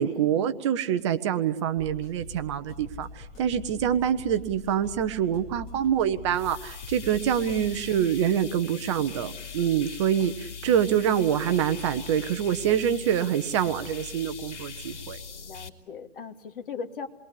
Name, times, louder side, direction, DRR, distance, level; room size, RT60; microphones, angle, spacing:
voice 1, 0.0-15.2, right 9 dB, 25° right, 9 dB, 0.9 m, -26 dB
sound 1, 1.8-7.8, left 3 dB, 25° left, 4.1 m, -44 dB
sound 2, 6.3-15.7, left 6 dB, 80° left, 3.3 m, -41 dB
voice 2, 15.5-17.1, left 5 dB, 50° left, 5 dB, 2.8 m, -39 dB
28.5 x 22.0 x 8.5 m, 0.83 s
hypercardioid pair, 155°, 35 cm